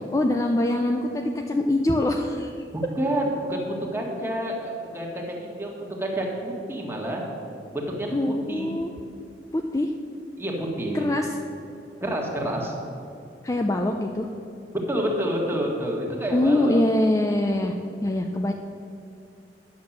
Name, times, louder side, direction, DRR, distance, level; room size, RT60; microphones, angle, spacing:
voice 1, 0.1-2.5 8.1-8.9 9.5-9.9 10.9-11.3 13.4-14.3 16.3-17.7 18.0-18.5, left 1 dB, 20° left, 3 dB, 0.4 m, -23 dB
voice 2, 2.7-5.7 6.0-7.2 7.7-8.1 8.5-8.7 10.4-11.1 12.0-12.7 14.9-16.8, right 1 dB, 15° right, -1 dB, 1.5 m, -28 dB
9.5 x 6.4 x 7.2 m, 2.6 s
head